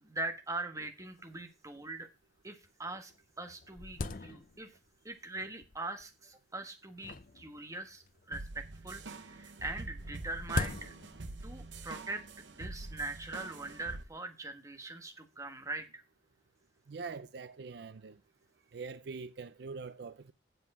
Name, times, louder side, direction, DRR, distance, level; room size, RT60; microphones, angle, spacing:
voice 1, 0.0-2.1 2.4-4.7 5.0-11.0 11.4-12.2 12.5-16.0, right 2 dB, 20° right, 1.3 m, -41 dB
sound 1, 0.8-0.9 1.1-1.2 1.9-2.0 2.6-2.7 3.1-4.9 5.6-6.1 7.0-8.3 9.6-11.4, left 3 dB, 50° left, 0.6 m, -41 dB
sound 2, 8.3-14.0, right 2 dB, 85° right, 1.0 m, -45 dB
voice 2, 16.9-18.2 18.7-20.3, right 4 dB, 65° right, 0.5 m, -43 dB
7.9 x 7.4 x 4.8 m
head